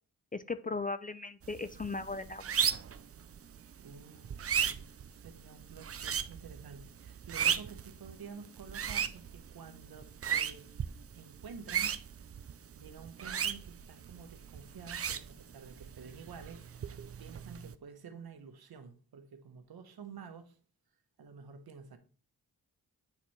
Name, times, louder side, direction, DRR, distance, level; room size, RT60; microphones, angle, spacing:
voice 1, 0.3-2.5, left 3 dB, 25° left, 0.4 m, -37 dB
sound 1, 1.4-17.7, right 8 dB, 40° right, 0.5 m, -37 dB
voice 2, 3.8-12.0 12.8-20.6 21.2-22.0, right 5 dB, 70° right, 1.0 m, -50 dB
8.2 x 4.2 x 3.0 m
cardioid pair, 55°, 39 cm